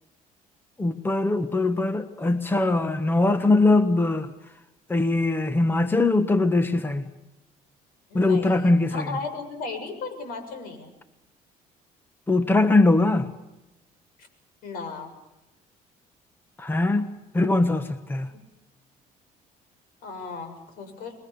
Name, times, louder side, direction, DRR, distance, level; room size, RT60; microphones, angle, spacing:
voice 1, 0.8-4.3 4.9-7.0 8.1-9.2 12.3-13.3 16.6-17.1 17.3-18.3, left 2 dB, 15° left, 1.4 m, -21 dB
voice 2, 8.1-10.9 14.6-15.1 18.3-18.4 20.0-21.1, left 4 dB, 70° left, 7.2 m, -36 dB
28.5 x 22.0 x 7.0 m
cardioid pair, 125°, 16 cm